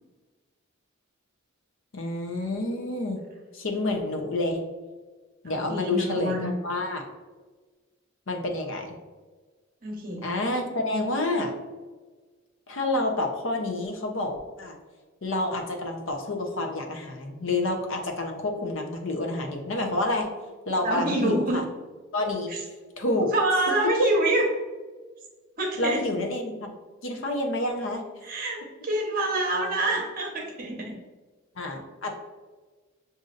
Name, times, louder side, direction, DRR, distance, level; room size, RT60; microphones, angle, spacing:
voice 1, 1.9-3.2 3.5-4.6 5.4-7.1 8.3-9.0 10.2-11.5 12.7-14.8 15.2-20.3 20.7-21.6 22.1-22.5 23.0-23.3 24.0-24.1 25.8-26.7 27.0-28.0 31.6-32.1, left 2 dB, 65° left, 3 dB, 0.7 m, -28 dB
voice 2, 5.4-6.4 9.8-10.2 20.8-21.6 22.5-22.6 23.3-24.4 25.6-26.0 28.2-30.9, right 1 dB, 45° right, 0 dB, 0.9 m, -26 dB
6.4 x 2.6 x 2.5 m, 1.4 s
head